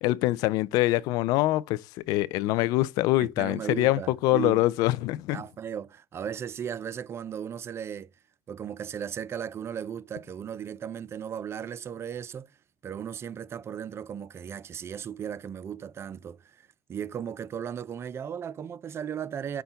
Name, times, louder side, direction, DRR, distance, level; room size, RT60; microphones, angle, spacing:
voice 1, 0.0-5.4, left 17 dB, 65° left, 0.4 m, -24 dB
voice 2, 3.2-4.6 5.3-8.1 8.5-12.5 12.8-19.6, right 8 dB, 40° right, 0.4 m, -36 dB
5.7 x 2.2 x 3.9 m
hypercardioid pair, 65°, 7 cm